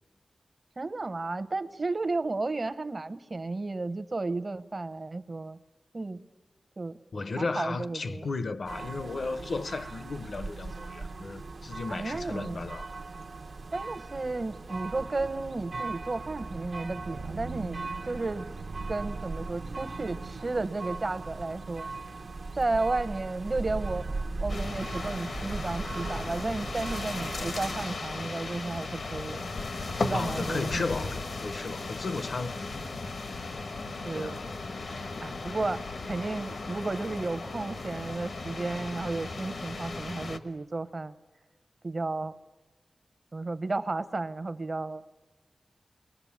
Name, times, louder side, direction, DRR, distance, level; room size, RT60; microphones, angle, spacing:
voice 1, 0.8-5.6 5.9-6.2 6.8-7.0 7.4-8.3 11.9-12.6 13.7-17.8 18.1-18.5 18.9-21.9 22.6-24.1 24.4-29.4 30.0-31.1 34.0-34.4 35.2-41.1 41.8-42.3 43.3-45.0, right 3 dB, 40° right, 0.7 m, -33 dB
voice 2, 7.1-12.9 30.1-32.7 34.1-34.4, left 3 dB, 70° left, 0.7 m, -34 dB
sound 1, 8.6-27.9, right 3 dB, 75° right, 0.8 m, -38 dB
sound 2, 24.5-40.4, left 3 dB, 85° left, 1.2 m, -36 dB
29.5 x 21.0 x 7.3 m
wide cardioid pair, 110°, 0 cm